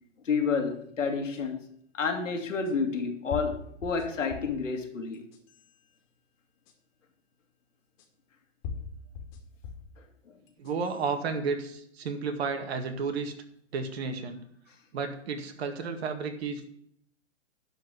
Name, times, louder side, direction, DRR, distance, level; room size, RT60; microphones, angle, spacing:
voice 1, 0.2-1.6 1.9-5.2, left 5 dB, 80° left, 4 dB, 2.3 m, -30 dB
sound 1, 1.3-1.4 2.6-2.7 3.3-4.6 5.1-5.7 6.7-6.8 8.0-8.1 8.6-9.9 10.5-11.0, left 5 dB, 40° left, 2.2 m, -40 dB
voice 2, 10.6-13.3 13.7-14.4 14.9-16.7, right 5 dB, 55° right, 6 dB, 2.2 m, -32 dB
11.5 x 4.7 x 8.3 m, 0.69 s
hypercardioid pair, 130°, 37 cm